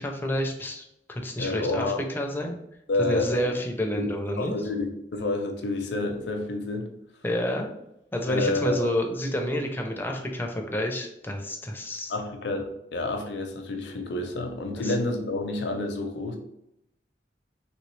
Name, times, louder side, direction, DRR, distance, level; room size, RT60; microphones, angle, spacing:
voice 1, 0.0-2.6 3.0-4.5 7.2-7.7 8.1-12.1 14.8-14.9, left 1 dB, 10° left, 3 dB, 0.4 m, -29 dB
voice 2, 1.4-2.0 2.9-3.4 4.0-4.1 4.4-6.9 8.3-8.9 12.1-16.4, left 2 dB, 75° left, 4 dB, 0.5 m, -29 dB
3.1 x 3.0 x 3.1 m, 0.80 s
head